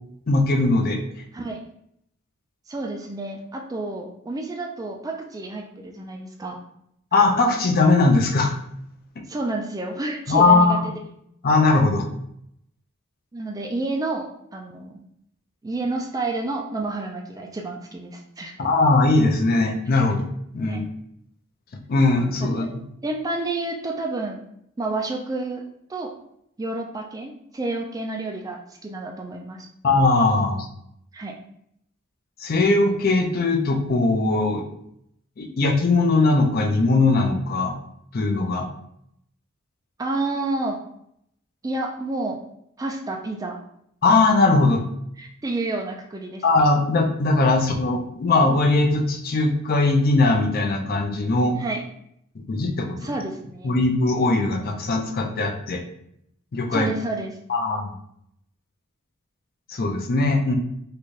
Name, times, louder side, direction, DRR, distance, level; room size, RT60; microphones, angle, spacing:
voice 1, 0.3-1.0 7.1-8.5 10.3-10.8 11.4-12.0 18.6-20.3 20.5-20.9 21.9-22.6 29.8-30.7 32.4-34.6 35.4-37.8 38.1-38.7 44.0-44.8 46.4-51.6 52.4-53.1 53.6-55.8 56.5-56.9 57.5-57.9 59.7-60.5, left 3 dB, 45° left, 3 dB, 0.5 m, -20 dB
voice 2, 2.7-6.6 9.3-10.9 13.3-15.0 15.6-18.5 20.7-20.8 22.4-22.7 23.0-24.4 24.8-25.6 25.9-26.1 26.6-29.7 31.1-31.4 40.0-40.8 41.6-42.4 42.8-43.6 45.2-46.4 47.5-47.6 51.6-51.8 53.0-53.8 56.7-57.3, right 2 dB, 20° right, 1 dB, 0.3 m, -30 dB
3.9 x 2.2 x 3.1 m, 0.73 s
head